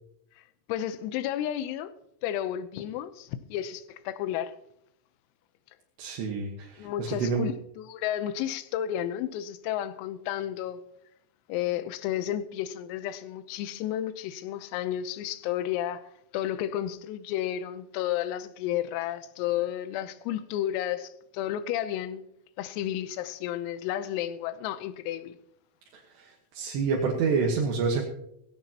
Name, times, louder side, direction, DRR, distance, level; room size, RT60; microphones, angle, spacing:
voice 1, 0.7-1.9 2.2-4.5 6.8-10.8 11.5-22.3 22.6-25.4, left 11 dB, 85° left, 3.5 m, -32 dB
voice 2, 6.0-7.5 25.9-28.0, right 5 dB, 65° right, 3.1 m, -28 dB
17.5 x 16.5 x 2.9 m
omnidirectional pair, 5.9 m